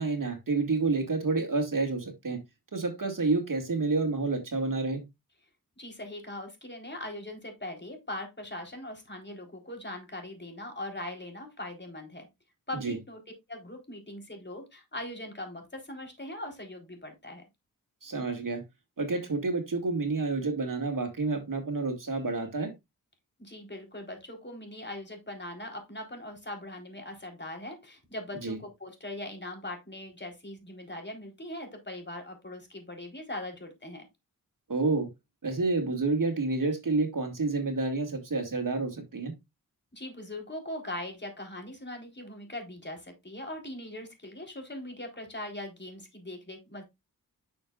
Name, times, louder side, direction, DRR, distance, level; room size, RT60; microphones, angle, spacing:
voice 1, 0.0-2.4 2.7-5.0 12.7-13.0 18.0-18.6 19.0-22.7 28.4-28.6 34.7-35.1 35.4-39.3, right 3 dB, 60° right, 2.3 m, -29 dB
voice 2, 5.8-12.3 12.7-13.2 13.5-17.4 23.4-34.1 39.9-46.8, left 1 dB, 30° left, 4.1 m, -40 dB
9.3 x 6.5 x 2.5 m
cardioid pair, 40°, 36 cm